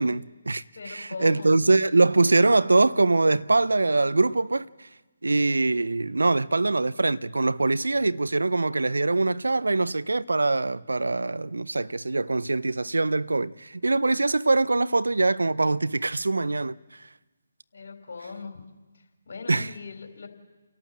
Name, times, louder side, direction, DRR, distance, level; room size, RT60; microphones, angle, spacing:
voice 1, 0.0-4.9 5.2-16.8 19.5-19.7, right 3 dB, 80° right, 0.6 m, -23 dB
voice 2, 0.8-1.5 17.7-18.6 19.3-20.3, left 4 dB, 60° left, 3.9 m, -39 dB
30.0 x 12.0 x 7.4 m
figure-of-eight pair, 145°, 0 cm